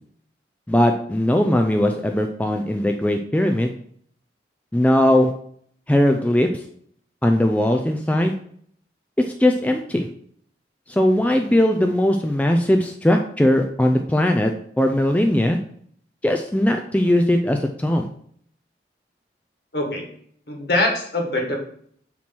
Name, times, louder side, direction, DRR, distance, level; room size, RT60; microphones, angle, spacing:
voice 1, 0.7-3.7 4.7-5.3 5.9-6.6 7.2-8.3 9.2-10.1 10.9-15.6 16.2-18.1, left 1 dB, 10° left, 4 dB, 0.3 m, -19 dB
voice 2, 19.7-20.1 20.5-21.6, left 1 dB, 60° left, 1 dB, 1.6 m, -23 dB
7.1 x 3.1 x 6.0 m, 0.63 s
head